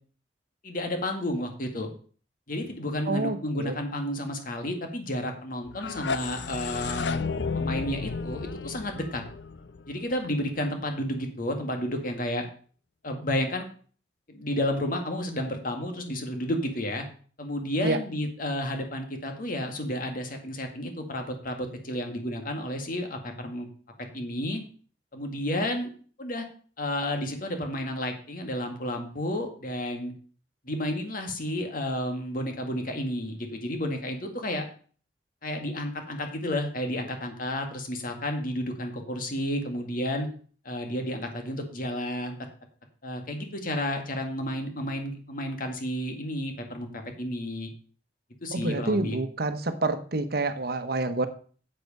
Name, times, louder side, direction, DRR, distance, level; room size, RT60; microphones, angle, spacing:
voice 1, 0.6-1.9 2.5-7.2 7.5-9.2 9.9-12.5 13.0-13.7 14.3-17.1 17.4-23.7 24.1-24.6 25.1-25.9 26.2-26.4 26.8-30.1 30.6-34.7 35.4-40.3 40.6-42.4 43.0-47.7 48.4-49.2, left 1 dB, 55° left, 5 dB, 2.0 m, -31 dB
voice 2, 3.1-3.7 17.8-18.0 48.5-51.3, right 2 dB, 60° right, 9 dB, 1.0 m, -28 dB
sound 1, 5.7-10.6, left 4 dB, 85° left, 0.6 m, -33 dB
8.2 x 8.0 x 5.4 m, 0.43 s
head